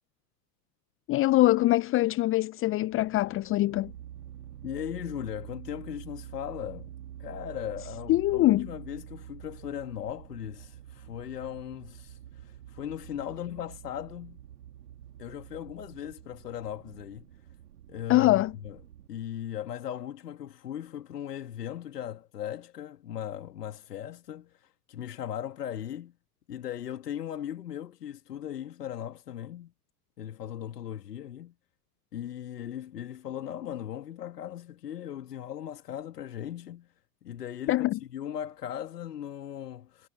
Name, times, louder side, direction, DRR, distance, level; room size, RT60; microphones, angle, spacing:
voice 1, 1.1-3.9 8.1-8.7 18.1-18.5 37.7-38.0, left 17 dB, 25° left, 0.8 m, -23 dB
sound 1, 2.9-19.1, right 11 dB, 65° right, 2.9 m, -47 dB
voice 2, 4.6-6.9 7.2-14.4 15.2-17.3 17.9-18.8 19.1-26.1 26.5-29.7 30.2-31.5 32.1-36.9 37.2-40.1, left 10 dB, 70° left, 2.0 m, -38 dB
figure-of-eight pair, 90°, 49 cm